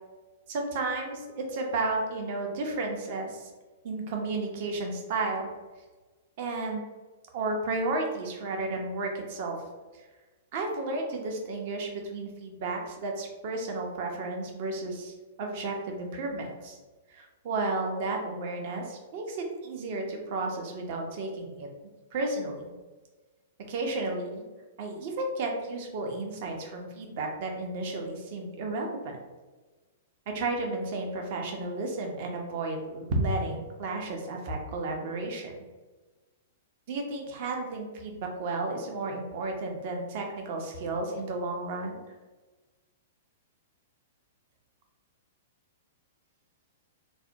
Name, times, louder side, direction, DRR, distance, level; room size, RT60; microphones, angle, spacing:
voice 1, 0.5-3.5 3.8-5.5 6.4-6.9 7.3-9.6 10.5-16.8 17.1-21.7 22.1-22.6 23.7-24.4 24.8-29.2 30.3-35.5 36.9-42.0, right 2 dB, 45° right, 2 dB, 0.6 m, -32 dB
3.2 x 2.1 x 2.7 m, 1.3 s
figure-of-eight pair, 105°, 0 cm